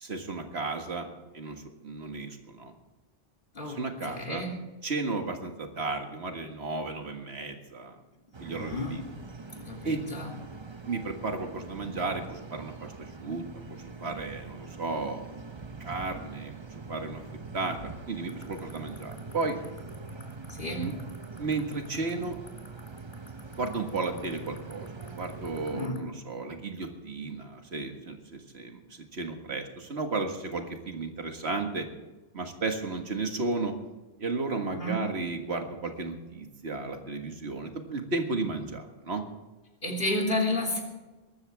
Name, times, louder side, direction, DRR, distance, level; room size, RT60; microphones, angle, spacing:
voice 1, 0.0-1.1 1.3-2.7 3.6-4.4 4.8-8.0 8.4-9.0 9.8-10.0 10.8-13.5 13.8-15.3 15.8-19.6 20.8-20.9 21.4-22.4 23.6-24.9 25.2-28.8 29.1-31.9 32.3-33.7 34.2-39.2, right 3 dB, 90° right, 4 dB, 2.0 m, -34 dB
voice 2, 3.5-4.6 8.5-10.3 20.5-20.9 25.7-26.0 34.7-35.1 39.8-40.8, left 1 dB, 55° left, -1 dB, 3.3 m, -32 dB
sound 1, 8.3-25.9, right 4 dB, 30° right, 0.8 m, -43 dB
sound 2, 18.3-26.0, left 3 dB, 70° left, 2.6 m, -50 dB
22.0 x 13.0 x 3.5 m, 1.1 s
omnidirectional pair, 1.1 m